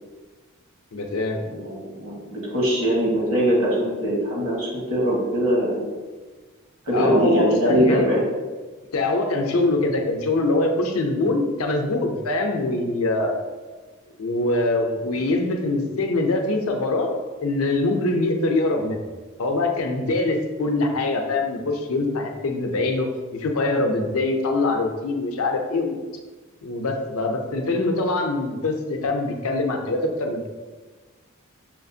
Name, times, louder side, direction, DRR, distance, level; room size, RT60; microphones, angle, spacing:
voice 1, 0.9-1.4 6.9-8.1 8.9-13.3 14.2-17.1 17.4-19.0 19.4-23.1 23.3-26.0 26.6-30.5, left 2 dB, 70° left, 3 dB, 0.6 m, -23 dB
voice 2, 1.4-5.9 6.9-8.3, equal, 70° right, -4 dB, 1.3 m, -22 dB
5.7 x 2.4 x 2.7 m, 1.3 s
head